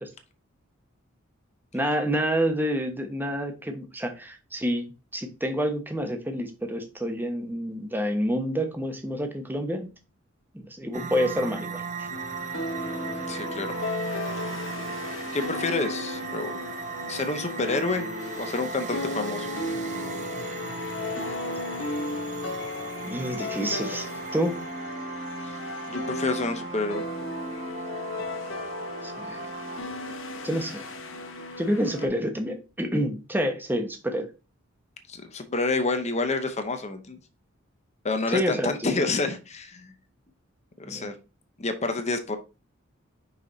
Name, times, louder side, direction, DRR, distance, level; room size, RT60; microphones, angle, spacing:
voice 1, 1.7-4.9 5.1-9.9 10.5-12.1 23.0-24.6 29.0-29.4 30.4-30.8 31.6-34.3 38.3-38.7 39.0-39.1 40.8-41.1, equal, 10° right, 5 dB, 1.0 m, -28 dB
sound 1, 10.9-29.8, right 4 dB, 40° right, 0.7 m, -37 dB
sound 2, 12.1-32.1, left 2 dB, 70° left, 1.3 m, -35 dB
voice 2, 13.3-13.7 15.3-16.6 17.1-18.1 18.4-19.5 25.9-27.0 35.1-37.2 38.0-39.9 40.8-41.2 41.6-42.4, left 3 dB, 35° left, 8 dB, 0.9 m, -28 dB
5.7 x 4.6 x 4.0 m, 0.30 s
head